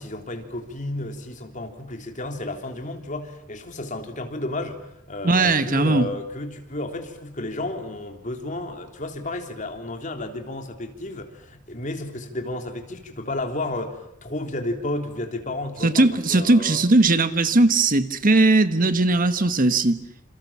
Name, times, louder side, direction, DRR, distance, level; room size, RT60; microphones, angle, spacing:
voice 1, 0.0-4.8 5.1-16.8, left 2 dB, 40° left, 5 dB, 3.5 m, -32 dB
voice 2, 5.2-6.1 15.8-20.0, right 2 dB, 45° right, 11 dB, 1.4 m, -19 dB
28.0 x 28.0 x 7.4 m, 0.76 s
head